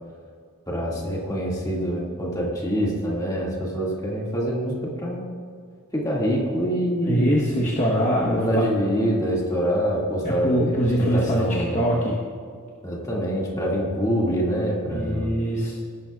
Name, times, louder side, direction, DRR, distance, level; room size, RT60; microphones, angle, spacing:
voice 1, 0.7-5.2 5.9-7.3 8.2-12.0 12.8-15.3, equal, 15° left, -4 dB, 2.0 m, -25 dB
voice 2, 7.0-8.7 10.2-11.5 11.7-12.2 14.9-15.7, equal, 30° left, -4 dB, 1.1 m, -23 dB
18.5 x 11.5 x 2.4 m, 2.2 s
head